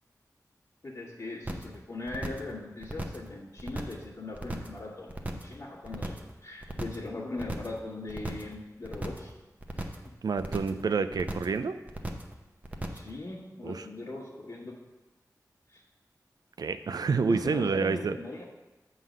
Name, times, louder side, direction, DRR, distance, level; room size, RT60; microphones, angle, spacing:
voice 1, 0.8-6.1 6.4-9.3 9.7-9.9 12.9-14.7 15.7-15.8 17.2-18.4, left 2 dB, 70° left, -11 dB, 1.6 m, -40 dB
sound 1, 1.5-1.8 2.1-2.5 2.8-3.3 3.6-4.0 4.3-4.8 5.1-5.5 5.8-6.3 6.6-7.1 7.4-7.8 8.1-8.5 8.8-9.3 9.6-10.1 10.4-10.8 11.1-11.6 11.9-12.3 12.6-13.1, right 1 dB, 25° right, 0.8 m, -36 dB
voice 2, 10.2-11.7 13.6-13.8 16.6-18.2, right 5 dB, 80° right, 10 dB, 0.4 m, -28 dB
7.2 x 3.9 x 6.3 m, 1.1 s
wide cardioid pair, 65°, 7 cm